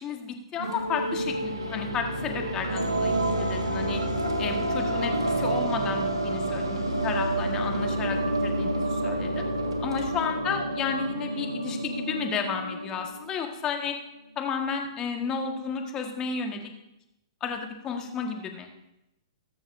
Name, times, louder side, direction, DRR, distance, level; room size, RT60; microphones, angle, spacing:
voice 1, 0.0-4.0 4.4-9.4 9.8-14.0 14.3-16.7 17.4-18.8, left 6 dB, 25° left, 3 dB, 1.5 m, -32 dB
sound 1, 0.5-13.5, right 1 dB, 90° right, 1.6 m, -29 dB
20.0 x 6.9 x 2.6 m, 0.88 s
hypercardioid pair, 120°, 3 cm